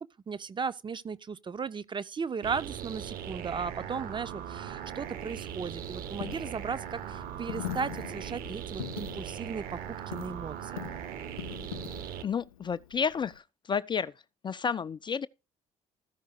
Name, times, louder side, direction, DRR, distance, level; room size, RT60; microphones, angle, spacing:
voice 1, 0.3-9.8 10.1-10.9, right 5 dB, 25° right, 0.7 m, -36 dB
sound 1, 2.4-12.2, right 9 dB, 55° right, 1.3 m, -39 dB
Coin (dropping), 4.8-13.4, left 12 dB, 75° left, 0.5 m, -43 dB
voice 2, 12.2-14.1 14.4-15.3, left 6 dB, 25° left, 0.5 m, -31 dB
14.0 x 5.3 x 5.1 m
figure-of-eight pair, 50°, 18 cm